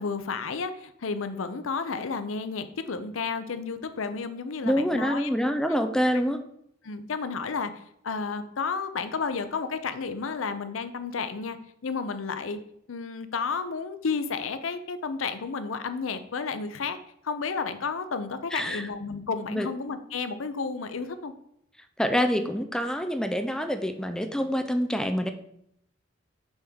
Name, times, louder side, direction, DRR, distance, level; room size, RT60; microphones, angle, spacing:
voice 1, 0.0-5.3 5.7-5.8 6.8-7.7 8.0-11.6 11.8-12.6 12.9-17.0 17.2-21.3, left 5 dB, 90° left, 11 dB, 0.6 m, -32 dB
voice 2, 4.6-6.4 18.5-18.9 19.5-19.7 22.0-25.3, equal, 5° left, 7 dB, 0.5 m, -26 dB
6.3 x 3.6 x 6.1 m, 0.74 s
head